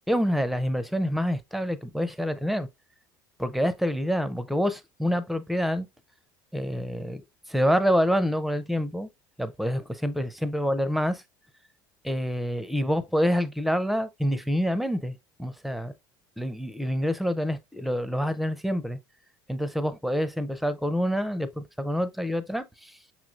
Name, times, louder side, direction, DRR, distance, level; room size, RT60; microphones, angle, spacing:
voice 1, 0.1-2.7 3.4-5.9 6.5-7.2 7.5-9.1 9.4-11.1 12.0-15.9 16.4-19.0 19.5-22.9, equal, ahead, 0.5 m, -27 dB
5.9 x 3.0 x 2.4 m
supercardioid pair, 90°, 11 cm